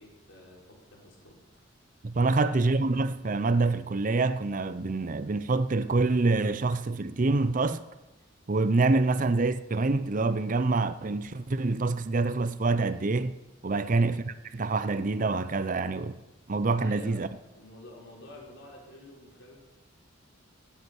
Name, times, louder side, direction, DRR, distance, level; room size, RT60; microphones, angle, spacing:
voice 1, 0.0-1.4 2.2-2.6 13.7-13.9 16.8-19.6, left 1 dB, 70° left, 3.9 m, -49 dB
voice 2, 2.0-7.8 8.5-13.4 13.6-14.2 14.5-16.2 16.5-17.3, right 3 dB, 40° right, 0.6 m, -26 dB
16.0 x 8.2 x 6.2 m
head